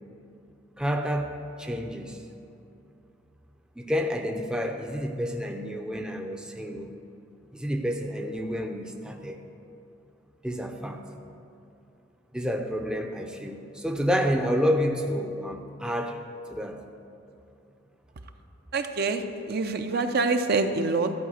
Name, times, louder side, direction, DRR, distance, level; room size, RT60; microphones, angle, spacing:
voice 1, 0.8-2.2 3.8-6.9 7.5-9.4 10.4-11.0 12.3-16.2 16.5-16.8, equal, 5° right, 3 dB, 0.5 m, -29 dB
voice 2, 18.7-21.1, right 3 dB, 55° right, 6 dB, 0.6 m, -26 dB
13.5 x 4.9 x 8.0 m, 2.6 s
head